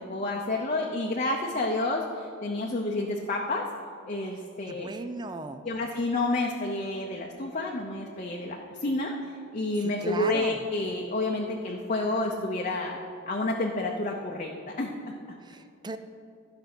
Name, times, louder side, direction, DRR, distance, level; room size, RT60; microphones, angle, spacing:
voice 1, 0.0-3.7 4.1-4.9 5.6-13.0 13.3-14.5 14.8-15.1, left 2 dB, 35° left, 0 dB, 0.7 m, -29 dB
voice 2, 4.7-5.6 10.0-10.6 15.5-16.0, right 2 dB, 20° right, 10 dB, 0.4 m, -37 dB
13.5 x 5.2 x 6.0 m, 2.5 s
head